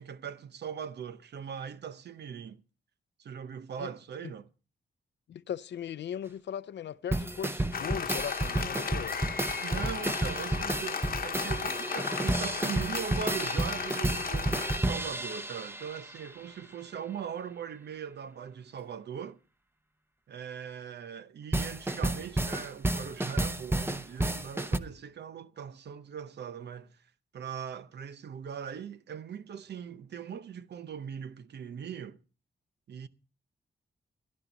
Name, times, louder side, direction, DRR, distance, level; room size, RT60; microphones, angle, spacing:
voice 1, 0.0-2.6 3.2-4.5 9.6-19.4 20.3-32.2 32.9-33.1, right 8 dB, 75° right, 0.7 m, -40 dB
voice 2, 5.3-9.2, left 9 dB, 85° left, 0.6 m, -38 dB
sound 1, 7.1-16.3 21.5-24.8, right 1 dB, 15° right, 0.8 m, -31 dB
Applause, 7.7-14.8, left 6 dB, 55° left, 1.0 m, -36 dB
17.0 x 11.5 x 3.9 m
cardioid pair, 95°, 18 cm